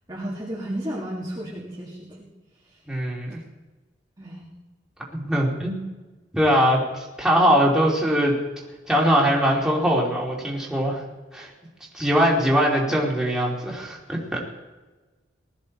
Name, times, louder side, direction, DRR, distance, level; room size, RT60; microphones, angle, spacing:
voice 1, 0.1-2.3 2.7-2.8 4.2-4.5, right 1 dB, 20° right, -5 dB, 2.0 m, -33 dB
voice 2, 2.9-3.4 5.1-5.8 6.3-8.3 8.9-11.0 11.3-11.5 11.9-14.4, equal, 5° right, -4 dB, 3.0 m, -21 dB
19.5 x 13.5 x 4.3 m, 1.2 s
head